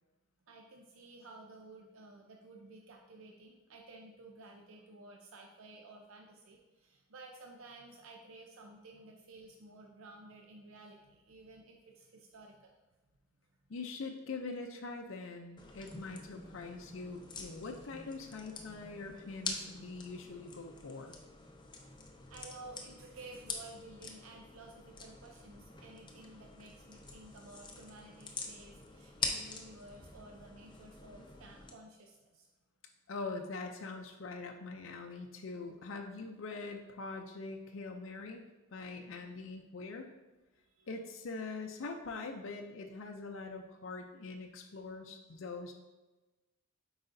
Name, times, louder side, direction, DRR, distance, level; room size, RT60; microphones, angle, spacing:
voice 1, 0.5-12.7 22.3-32.5 40.6-40.9, right 2 dB, 80° right, 2 dB, 0.6 m, -53 dB
voice 2, 13.7-21.2 33.1-38.4 38.7-40.1 40.9-45.7, left 3 dB, 65° left, 3 dB, 0.5 m, -43 dB
sound 1, 15.6-31.7, left 4 dB, 25° left, 0.6 m, -45 dB
8.0 x 4.8 x 2.6 m, 1.1 s
head